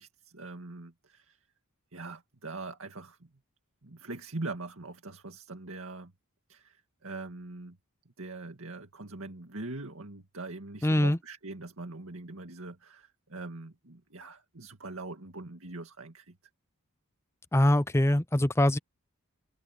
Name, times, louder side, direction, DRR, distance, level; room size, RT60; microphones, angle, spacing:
voice 1, 0.0-1.4 1.9-3.3 3.8-6.1 6.5-7.8 8.2-16.4, right 2 dB, 65° right, 2.1 m, -42 dB
voice 2, 10.8-11.2 17.5-18.8, left 1 dB, 10° left, 0.6 m, -23 dB
head